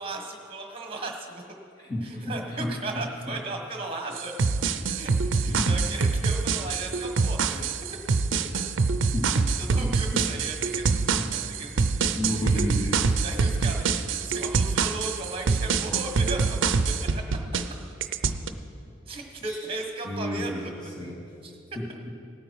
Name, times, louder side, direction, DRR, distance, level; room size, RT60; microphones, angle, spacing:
voice 1, 0.0-1.4 2.0-4.3 4.9-5.1 5.4-7.8 9.3-12.6 13.2-16.6 16.8-17.2 19.1-20.7 21.4-21.5, right 2 dB, 30° right, 2 dB, 1.5 m, -36 dB
voice 2, 1.8-3.4 5.5-5.7 9.1-9.3 9.8-10.2 10.9-11.3 12.1-13.1 19.4-19.6 20.0-21.2 21.7-22.1, left 1 dB, 20° left, -4 dB, 2.2 m, -32 dB
sound 1, 4.2-17.7 18.0-18.5, right 4 dB, 80° right, 0.6 m, -25 dB
17.5 x 9.3 x 4.7 m, 2.6 s
head